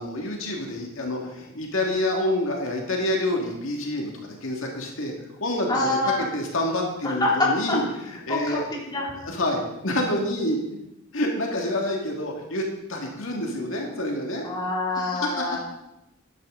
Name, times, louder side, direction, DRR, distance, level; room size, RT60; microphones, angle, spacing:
voice 1, 0.0-5.1 5.4-8.7 8.9-10.6 11.1-12.6 12.9-14.5 15.1-15.4, left 1 dB, 70° left, 1 dB, 2.0 m, -27 dB
voice 2, 5.7-6.3 7.0-7.8 8.3-9.1 14.4-15.6, left 2 dB, 20° left, -3 dB, 2.5 m, -26 dB
13.0 x 10.5 x 3.8 m, 0.91 s
head